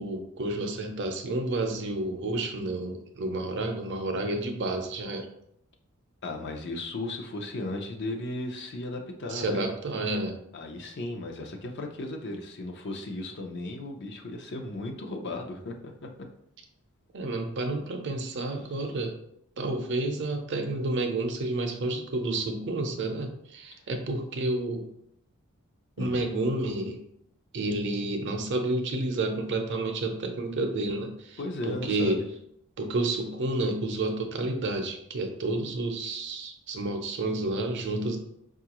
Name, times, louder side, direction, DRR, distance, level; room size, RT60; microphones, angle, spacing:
voice 1, 0.0-5.3 9.3-10.4 17.1-19.1 19.6-24.9 26.0-27.0 27.5-32.2 32.8-38.2, right 2 dB, 55° right, 4 dB, 0.6 m, -30 dB
voice 2, 6.2-9.7 10.5-16.1 26.0-26.3 31.4-32.3, left 2 dB, 50° left, 2 dB, 0.5 m, -36 dB
4.6 x 2.4 x 2.9 m, 0.72 s
head